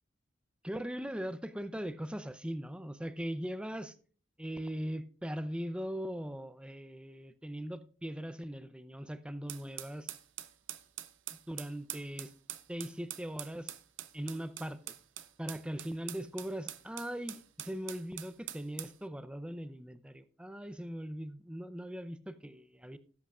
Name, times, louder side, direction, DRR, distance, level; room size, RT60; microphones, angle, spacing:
voice 1, 0.6-3.9 4.4-10.2 11.5-12.3 12.7-13.7 14.1-14.9 15.4-23.0, equal, 5° right, 0.6 m, -40 dB
sound 1, 9.5-19.0, right 13 dB, 70° right, 0.7 m, -45 dB
17.5 x 7.9 x 2.5 m
head